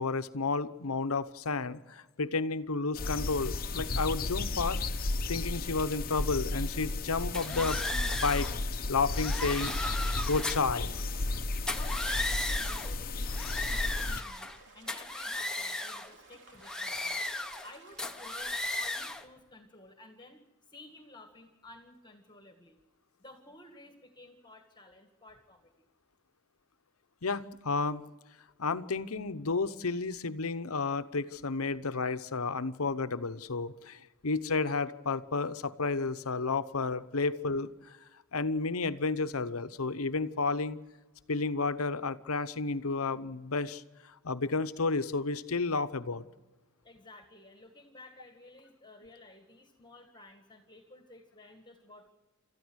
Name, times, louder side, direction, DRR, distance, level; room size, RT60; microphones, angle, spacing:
voice 1, 0.0-4.8 5.3-7.8 8.1-8.5 8.9-11.0 27.2-28.0 28.6-38.0 38.3-40.8 41.3-46.2, left 4 dB, 85° left, 12 dB, 0.9 m, -32 dB
sound 1, 3.0-14.2, left 2 dB, 45° left, 0.9 m, -33 dB
sound 2, 7.3-8.6 9.1-10.8 11.6-12.9 13.3-14.6 14.9-16.1 16.6-17.7 18.0-19.2, left 2 dB, 5° left, 1.2 m, -35 dB
sound 3, 10.2-18.3, right 3 dB, 60° right, 3.4 m, -57 dB
voice 2, 11.7-17.2 17.6-22.8 23.2-25.7 46.8-52.1, left 2 dB, 20° left, 5 dB, 1.9 m, -53 dB
30.0 x 14.0 x 6.3 m, 1.2 s
head